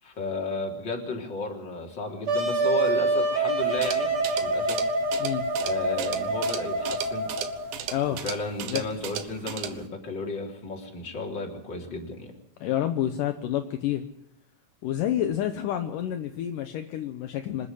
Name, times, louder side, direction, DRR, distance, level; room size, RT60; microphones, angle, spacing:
voice 1, 0.0-4.8 5.6-7.3 8.1-12.3, left 3 dB, 30° left, 1 dB, 3.9 m, -33 dB
Wind instrument woodwind instrument, 2.3-7.8, right 2 dB, 50° right, 4.3 m, -26 dB
sound 1, 3.6-9.9, right 10 dB, 85° right, 3.1 m, -37 dB
voice 2, 7.9-8.2 8.6-8.8 12.6-14.0 14.8-17.7, left 11 dB, 75° left, 7 dB, 2.5 m, -29 dB
26.0 x 10.5 x 9.9 m, 0.83 s
omnidirectional pair, 4.1 m